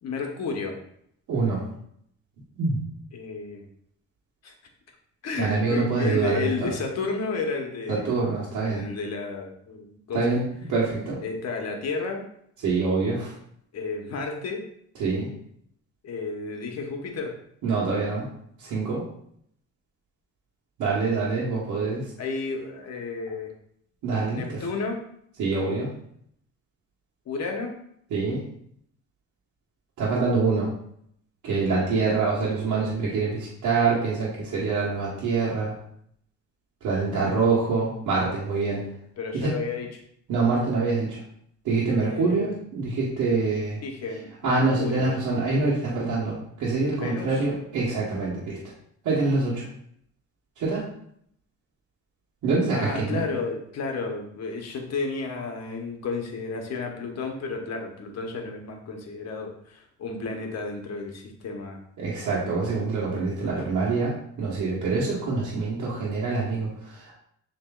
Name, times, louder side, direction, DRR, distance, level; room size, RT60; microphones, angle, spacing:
voice 1, 0.0-0.8 3.1-3.6 4.4-4.5 5.2-8.2 8.6-10.3 11.2-12.2 13.7-14.6 16.0-17.4 22.2-23.5 24.3-25.0 27.3-27.8 36.9-37.3 39.2-39.9 42.1-42.5 43.8-45.1 47.0-47.4 52.7-61.8 63.4-63.7, left 4 dB, 60° left, 2 dB, 1.1 m, -32 dB
voice 2, 1.3-1.6 2.6-2.8 5.4-6.7 7.9-8.9 10.1-11.2 12.6-13.3 15.0-15.3 17.6-18.3 18.6-19.0 20.8-22.1 24.0-24.6 25.4-25.9 28.1-28.4 30.0-30.7 31.4-35.8 36.8-38.9 39.3-39.5 40.3-41.2 41.6-43.8 44.4-48.6 49.0-49.7 50.6-50.9 52.4-53.3 62.0-67.1, right 4 dB, 80° right, -7 dB, 1.3 m, -25 dB
7.0 x 3.0 x 2.4 m, 0.69 s
cardioid pair, 90°, 30 cm